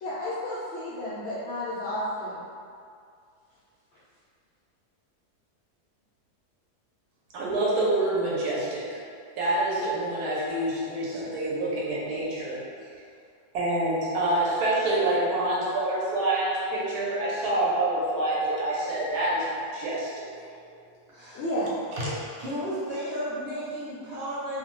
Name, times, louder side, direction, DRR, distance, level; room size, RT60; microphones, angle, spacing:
voice 1, 0.0-2.4 21.3-21.7, left 1 dB, 75° left, -10 dB, 0.6 m, -31 dB
voice 2, 7.3-9.0 9.4-12.6 13.5-20.1 22.0-22.2, right 1 dB, 75° right, -5 dB, 1.1 m, -27 dB
voice 3, 20.3-20.8 21.1-21.4 22.4-24.6, equal, 60° right, -12 dB, 0.7 m, -34 dB
2.6 x 2.1 x 2.9 m, 2.3 s
omnidirectional pair, 1.7 m